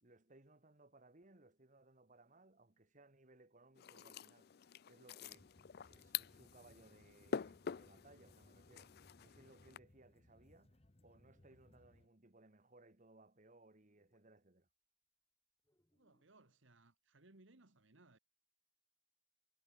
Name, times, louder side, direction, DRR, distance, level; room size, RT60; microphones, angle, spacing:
voice 1, 0.0-4.6 4.9-5.6 5.9-14.7, right 2 dB, 40° right, 1.8 m, -65 dB
sound 1, 2.8-6.4 7.0-7.1 7.5-7.6 8.0-8.6 8.9-9.0 9.2-9.6 10.0-10.3 10.8-12.1 13.0-13.1 13.4-14.4 15.6-16.7, equal, 15° left, 5.2 m, -86 dB
sound 2, 3.8-9.8, left 7 dB, 50° left, 0.4 m, -47 dB
sound 3, 5.3-12.1, left 1 dB, 30° left, 1.2 m, -68 dB
voice 2, 15.9-18.2, right 2 dB, 70° right, 1.9 m, -66 dB
head